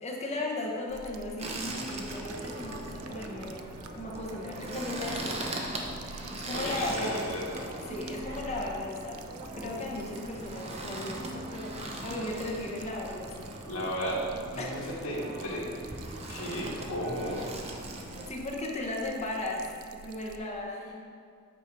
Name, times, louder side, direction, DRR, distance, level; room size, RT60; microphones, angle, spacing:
voice 1, 0.0-5.6 6.3-7.2 7.9-9.2 9.5-13.3 14.6-14.7 18.3-19.7 20.0-20.9, left 2 dB, 30° left, -2 dB, 1.1 m, -36 dB
sound 1, 0.9-20.4, right 4 dB, 75° right, 0.4 m, -49 dB
sound 2, 1.4-18.3, right 1 dB, 30° right, 0.7 m, -40 dB
voice 2, 6.5-7.8 13.7-14.2 14.5-15.6 16.3-17.5, equal, 70° left, -6 dB, 1.8 m, -34 dB
8.5 x 4.5 x 4.7 m, 2.2 s
head